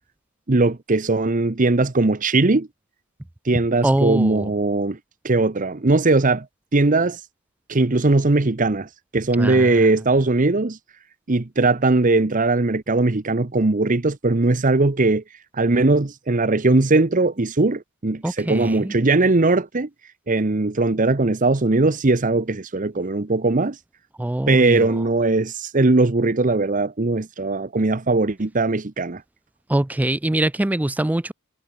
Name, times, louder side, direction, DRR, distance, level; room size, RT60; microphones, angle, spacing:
voice 1, 0.5-2.7 3.4-5.0 5.2-6.5 6.7-7.2 7.7-10.8 11.3-15.2 15.5-19.9 20.3-23.8 24.5-29.2, right 2 dB, 40° right, 0.9 m, -19 dB
voice 2, 3.8-4.5 9.4-9.7 18.2-18.9 24.2-24.9 29.7-31.3, right 1 dB, 5° right, 0.3 m, -23 dB
head